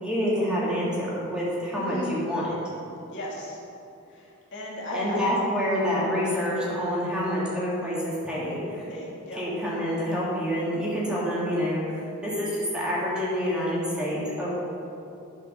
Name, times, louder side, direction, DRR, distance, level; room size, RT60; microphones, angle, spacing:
voice 1, 0.0-2.6 4.9-8.9 9.3-14.5, equal, 5° right, -7 dB, 2.2 m, -27 dB
voice 2, 1.7-2.2 3.1-3.6 4.1-5.3 8.9-9.4, left 1 dB, 55° left, -4 dB, 2.1 m, -36 dB
11.5 x 5.4 x 6.5 m, 2.7 s
head